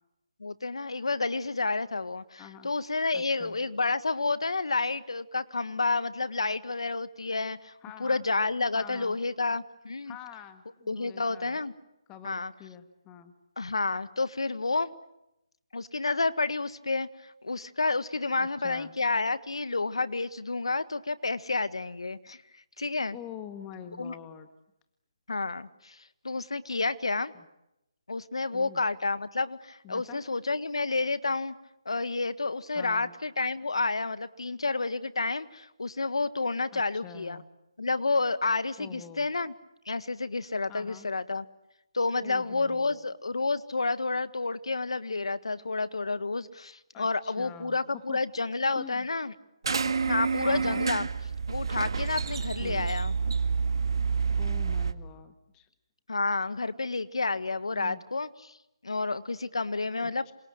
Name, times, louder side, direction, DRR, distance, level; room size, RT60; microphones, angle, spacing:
voice 1, 0.4-7.7 8.0-10.2 10.9-11.7 12.2-12.5 13.6-14.9 15.7-22.4 22.8-23.2 24.0-24.2 25.3-27.3 28.1-31.6 31.9-37.4 37.8-39.5 39.9-41.4 41.9-49.3 49.7-51.1 51.5-53.1 56.1-58.6 58.8-60.3, left 3 dB, 85° left, 14 dB, 1.7 m, -30 dB
voice 2, 2.4-2.7 3.1-3.6 7.8-8.2 8.7-9.2 10.1-11.6 12.1-13.3 18.4-18.9 23.1-24.5 27.3-27.4 28.5-28.8 29.8-30.2 32.7-33.1 36.7-37.5 38.8-39.3 40.7-41.1 42.2-43.1 46.9-48.2 48.7-49.1 50.4-50.9 52.6-52.9 54.4-55.7 57.7-58.0 60.0-60.3, left 9 dB, 15° left, 9 dB, 1.7 m, -46 dB
sound 1, 49.6-54.9, right 5 dB, 65° right, 2.0 m, -28 dB
27.5 x 27.0 x 7.7 m, 0.86 s
hypercardioid pair, 160°, 3 cm